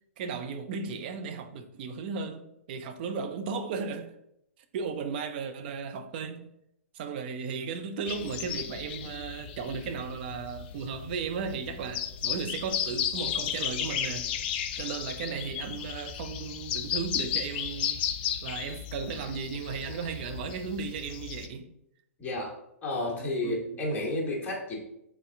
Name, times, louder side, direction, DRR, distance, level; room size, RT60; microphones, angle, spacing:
voice 1, 0.2-4.1 4.7-6.4 6.9-14.3 14.8-18.0 18.4-21.7 23.1-23.8, right 5 dB, 40° right, 0.5 m, -35 dB
sound 1, 8.1-21.5, left 9 dB, 40° left, 0.4 m, -34 dB
voice 2, 22.2-22.5 22.8-24.8, left 1 dB, 20° left, 1.3 m, -31 dB
4.1 x 3.6 x 3.4 m
figure-of-eight pair, 115°, 8 cm